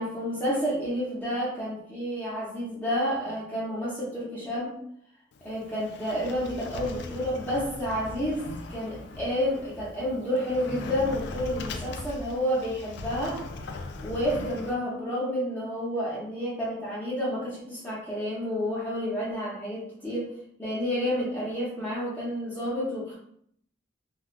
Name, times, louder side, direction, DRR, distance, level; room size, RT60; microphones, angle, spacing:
voice 1, 0.0-4.7 5.4-13.4 14.0-20.3 20.6-23.1, equal, 10° left, -8 dB, 0.7 m, -30 dB
Sliding door, 5.3-14.7, left 3 dB, 60° left, 0.3 m, -40 dB
3.2 x 2.3 x 2.4 m, 0.67 s
head